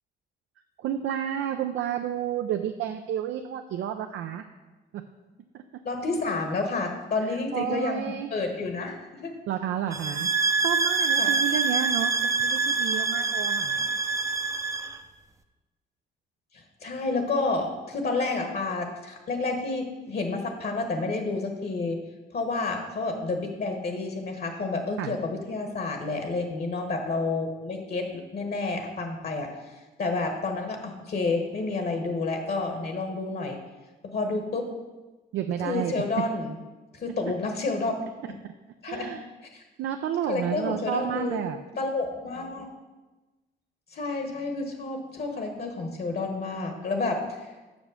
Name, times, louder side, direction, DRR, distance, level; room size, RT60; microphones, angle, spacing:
voice 1, 0.8-4.5 4.9-5.0 5.5-5.8 7.2-8.3 9.5-10.3 10.6-13.8 25.0-25.1 35.3-35.9 38.4-38.5 38.9-39.2 39.8-41.6, right 10 dB, 80° right, 6 dB, 0.5 m, -31 dB
voice 2, 5.8-9.3 11.2-11.3 13.7-13.9 16.5-22.0 22.3-29.5 30.0-33.6 34.0-34.7 35.6-36.5 36.9-37.9 38.3-38.4 38.8-39.2 39.5-39.6 40.3-41.4 41.8-42.7 43.9-47.2, left 3 dB, 50° left, 4 dB, 1.2 m, -30 dB
sound 1, 9.9-15.0, right 4 dB, 15° right, 0.5 m, -25 dB
6.1 x 5.1 x 6.7 m, 1.2 s
cardioid pair, 90°, 20 cm